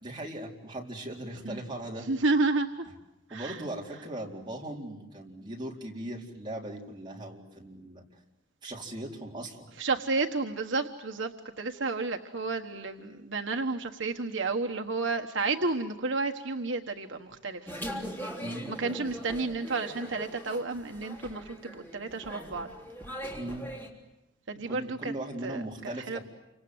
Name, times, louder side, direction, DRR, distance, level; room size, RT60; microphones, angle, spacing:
voice 1, 0.0-2.1 3.3-8.0 8.6-9.7 18.4-18.7 23.4-23.7 24.7-26.2, right 1 dB, 25° right, -1 dB, 4.0 m, -39 dB
voice 2, 2.1-2.8 3.3-3.6 9.8-17.7 18.7-22.7 24.5-25.1 25.4-25.6 26.1-26.2, right 3 dB, 65° right, 4 dB, 1.3 m, -31 dB
sound 1, 17.7-23.9, equal, 10° left, 3.5 m, -41 dB
29.0 x 26.0 x 8.0 m, 0.99 s
head